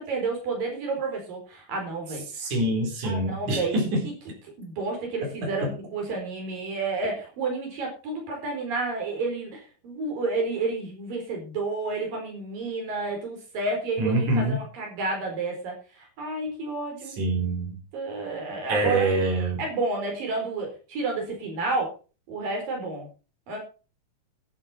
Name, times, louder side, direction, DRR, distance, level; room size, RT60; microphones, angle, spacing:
voice 1, 0.0-2.2 3.0-4.1 4.6-17.1 17.9-19.1 19.6-21.9 22.3-23.1 23.5-23.6, right 3 dB, 90° right, 1 dB, 6.1 m, -30 dB
voice 2, 2.3-4.1 5.2-5.7 14.0-14.6 17.1-17.8 18.7-19.6, right 2 dB, 65° right, 0 dB, 5.5 m, -25 dB
12.0 x 12.0 x 4.4 m, 0.34 s
omnidirectional pair, 3.8 m